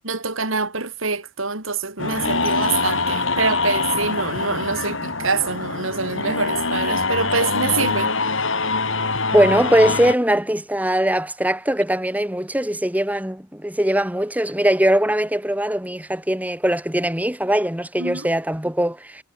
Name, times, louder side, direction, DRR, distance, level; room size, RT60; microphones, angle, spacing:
voice 1, 0.0-8.1 8.6-8.7 18.0-18.3, right 4 dB, 75° right, 5.7 m, -25 dB
sound 1, 2.0-10.1, left 3 dB, 65° left, 7.1 m, -24 dB
voice 2, 9.3-19.2, right 1 dB, 5° right, 2.8 m, -21 dB
head